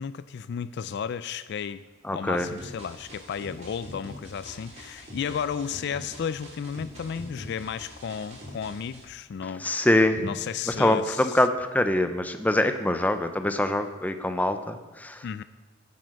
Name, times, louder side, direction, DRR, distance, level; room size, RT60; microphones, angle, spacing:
voice 1, 0.0-1.8 2.1-9.9 10.2-11.4 15.2-15.4, left 7 dB, 60° left, 15 dB, 0.3 m, -33 dB
voice 2, 2.0-2.5 9.6-10.3 10.7-15.4, left 1 dB, 10° left, 8 dB, 0.6 m, -24 dB
sound 1, 2.4-9.0, equal, 35° right, 3.1 m, -44 dB
9.8 x 7.7 x 6.3 m, 1.3 s
head